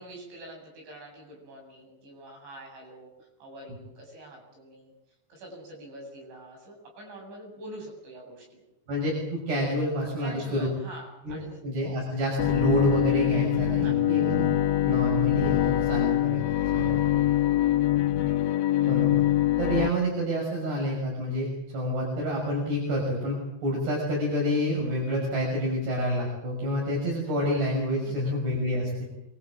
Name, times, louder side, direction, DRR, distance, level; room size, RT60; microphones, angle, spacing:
voice 1, 0.0-4.9 5.3-8.6 10.2-12.1 13.8-14.1 16.8-17.0 17.4-17.6 28.0-28.1, right 1 dB, 80° right, 1 dB, 10.5 m, -45 dB
voice 2, 8.9-10.7 11.2-14.4 14.8-16.4 16.7-17.0 18.9-19.2 19.6-21.5 21.7-29.1, equal, 65° right, -2 dB, 8.4 m, -28 dB
Bowed string instrument, 12.4-19.9, left 13 dB, 65° left, 2.6 m, -24 dB
27.0 x 24.0 x 7.6 m, 0.82 s
omnidirectional pair, 5.1 m